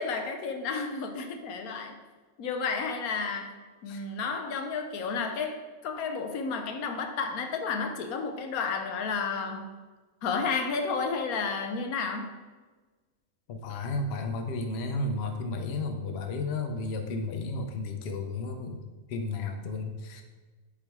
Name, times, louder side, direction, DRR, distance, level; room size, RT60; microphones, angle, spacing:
voice 1, 0.0-2.0 2.4-3.5 3.8-9.7 10.2-12.3, left 5 dB, 85° left, 5 dB, 1.2 m, -31 dB
voice 2, 13.5-18.8 19.1-20.2, left 3 dB, 55° left, 5 dB, 0.8 m, -33 dB
7.4 x 3.8 x 4.6 m, 1.3 s
omnidirectional pair, 1.5 m